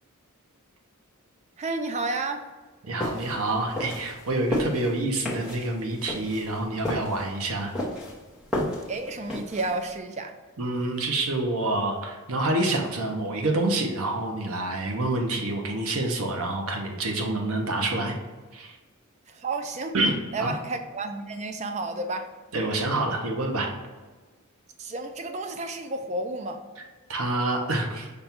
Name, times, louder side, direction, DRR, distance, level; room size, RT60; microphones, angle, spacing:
voice 1, 1.6-2.4 8.9-10.3 19.3-19.9 20.3-22.3 24.8-26.6, right 2 dB, 30° right, 6 dB, 0.4 m, -31 dB
voice 2, 2.9-7.7 10.6-18.1 18.5-18.8 19.9-20.5 22.5-23.7 27.1-28.1, right 2 dB, 75° right, 2 dB, 0.7 m, -27 dB
sound 1, 3.0-9.9, left 1 dB, 5° right, 0.8 m, -33 dB
5.2 x 2.3 x 4.2 m, 1.3 s
head